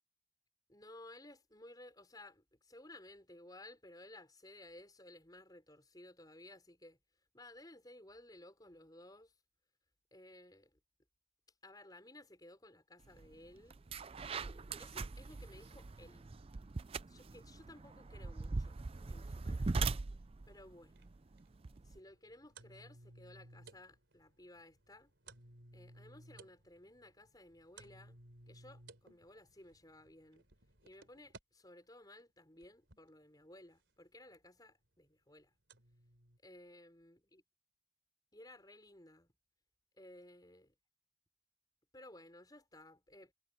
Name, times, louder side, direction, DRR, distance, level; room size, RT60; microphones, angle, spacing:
voice 1, 0.7-7.0 7.3-9.3 10.1-10.8 11.6-13.8 14.3-16.2 17.1-18.8 19.1-19.8 20.5-21.0 21.8-25.1 25.7-28.2 28.5-30.5 30.8-35.5 36.4-37.4 38.3-39.3 40.0-40.7 41.9-43.3, left 1 dB, 20° left, 5.1 m, -57 dB
sound 1, 13.2-13.3 13.7-22.0, right 3 dB, 30° right, 0.4 m, -41 dB
sound 2, 20.6-31.4 32.2-33.1 34.3-34.4 34.8-34.9 35.7-36.4, right 2 dB, 65° right, 3.7 m, -60 dB
head